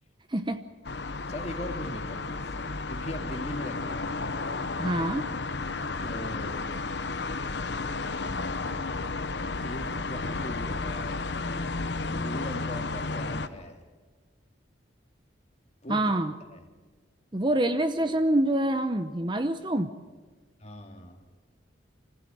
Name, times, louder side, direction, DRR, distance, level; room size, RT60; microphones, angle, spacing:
voice 1, 0.3-0.7 4.8-5.3 15.9-16.3 17.3-19.9, right 1 dB, 25° right, 9 dB, 0.8 m, -26 dB
sound 1, 0.8-13.5, left 3 dB, 60° left, 1.0 m, -32 dB
voice 2, 1.3-4.2 6.0-6.7 9.6-11.3 12.0-13.8 15.8-16.0 16.5-16.6 20.6-21.3, left 1 dB, 35° left, 4 dB, 2.5 m, -39 dB
26.0 x 15.0 x 9.1 m, 1.4 s
head